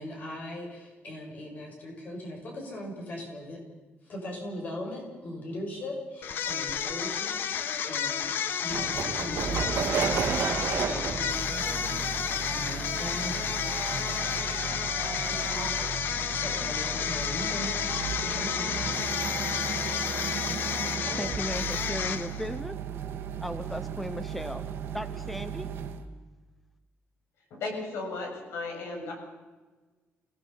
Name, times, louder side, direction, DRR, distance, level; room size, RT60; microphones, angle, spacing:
voice 1, 0.0-3.6 4.1-8.3 8.6-11.9 12.3-13.6 13.8-17.9 18.3-18.7, left 1 dB, 40° left, 1 dB, 7.0 m, -40 dB
sound 1, 6.2-22.5, left 8 dB, 55° left, 1.0 m, -31 dB
sound 2, 8.7-26.0, right 7 dB, 65° right, 2.3 m, -34 dB
voice 2, 21.2-22.8 23.4-24.7 24.9-25.7, equal, 5° left, 12 dB, 0.6 m, -36 dB
voice 3, 27.5-29.2, left 3 dB, 80° left, 1 dB, 7.5 m, -35 dB
28.5 x 18.5 x 5.7 m, 1.3 s
cardioid pair, 180°, 4 cm